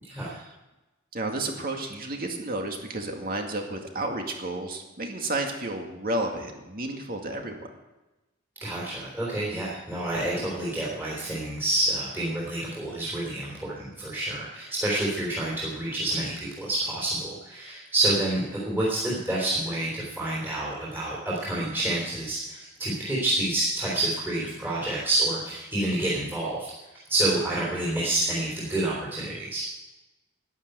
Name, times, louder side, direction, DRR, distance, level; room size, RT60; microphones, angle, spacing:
voice 1, 0.1-0.5 1.1-7.7, right 2 dB, 45° right, 3 dB, 2.2 m, -32 dB
voice 2, 8.6-26.7 27.1-29.6, right 1 dB, 10° right, -6 dB, 3.4 m, -28 dB
12.0 x 10.5 x 7.9 m, 1.0 s
head